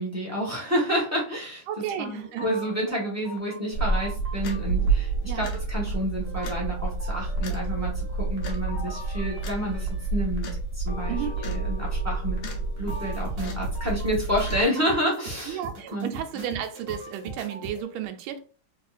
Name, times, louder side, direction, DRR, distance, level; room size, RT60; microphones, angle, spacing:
voice 1, 0.0-1.6 2.0-12.4 12.8-15.6 15.9-16.1, equal, 15° right, 0.6 m, -29 dB
voice 2, 1.7-2.5 5.3-5.5 11.1-11.4 15.5-18.4, right 10 dB, 85° right, 1.4 m, -33 dB
sound 1, 2.1-17.8, right 1 dB, 50° right, 0.7 m, -42 dB
sound 2, 3.7-14.6, right 3 dB, 80° left, 1.7 m, -29 dB
3.5 x 3.2 x 2.4 m
omnidirectional pair, 2.3 m